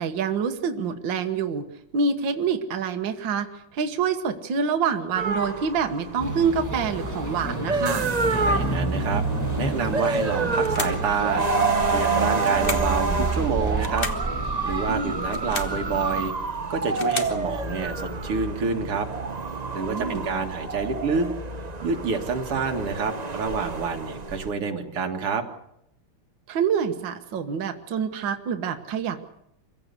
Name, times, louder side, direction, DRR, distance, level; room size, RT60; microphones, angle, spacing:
voice 1, 0.0-1.7 1.9-8.1 14.9-15.2 19.9-20.3 26.5-29.3, right 6 dB, 60° right, 6 dB, 1.9 m, -26 dB
sound 1, 5.2-24.5, right 4 dB, 40° right, 0.5 m, -28 dB
sound 2, 6.2-16.3, right 2 dB, 10° left, 2.0 m, -30 dB
voice 2, 8.3-9.2 9.5-14.1 14.6-16.3 16.7-19.1 19.7-21.3 21.8-25.4, right 5 dB, 85° right, 4 dB, 2.8 m, -28 dB
sound 3, 10.6-11.1 12.4-13.0 13.8-14.3 15.2-15.8 16.7-17.4, left 3 dB, 25° left, 1.5 m, -33 dB
25.5 x 16.0 x 8.2 m, 0.79 s
omnidirectional pair, 2.4 m